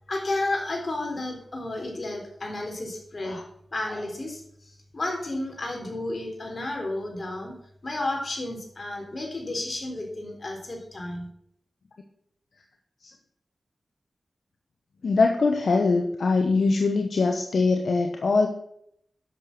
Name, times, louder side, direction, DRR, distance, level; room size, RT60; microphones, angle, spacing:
voice 1, 0.1-3.4 3.7-7.5 7.8-11.3, left 2 dB, 50° left, 1 dB, 3.8 m, -32 dB
voice 2, 15.0-18.5, left 3 dB, 75° left, 4 dB, 1.0 m, -22 dB
10.5 x 6.8 x 6.0 m, 0.70 s
cardioid pair, 50°, 0 cm